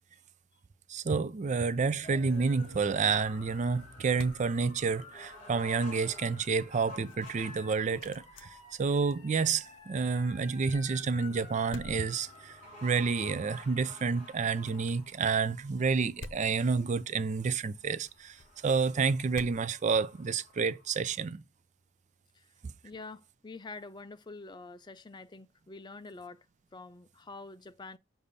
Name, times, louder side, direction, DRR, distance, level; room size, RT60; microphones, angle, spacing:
voice 1, 0.9-21.4 22.6-22.7, right 5 dB, 40° right, 0.4 m, -29 dB
sound 1, 2.0-21.2, left 2 dB, 40° left, 2.6 m, -51 dB
sound 2, 3.2-20.6, left 2 dB, 85° left, 0.7 m, -54 dB
voice 2, 22.8-26.5 26.7-28.0, left 3 dB, 25° left, 0.4 m, -46 dB
6.7 x 2.6 x 5.4 m
head